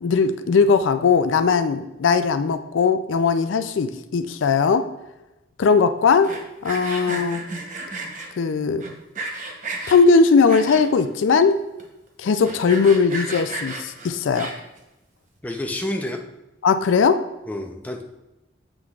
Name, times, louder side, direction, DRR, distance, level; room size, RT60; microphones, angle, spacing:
voice 1, 0.0-4.9 5.6-6.3 6.6-7.4 8.4-8.8 9.9-11.6 12.2-14.5 16.6-17.2, left 5 dB, 85° left, 10 dB, 0.4 m, -19 dB
Sawing, 6.1-8.3 8.8-10.0 10.5-11.1 11.5-11.6 11.8-11.9 12.3-14.8, right 2 dB, 40° right, 0.8 m, -33 dB
voice 2, 15.4-16.2 17.5-18.0, left 1 dB, 10° left, 2 dB, 0.5 m, -29 dB
7.8 x 5.8 x 2.4 m, 0.96 s
head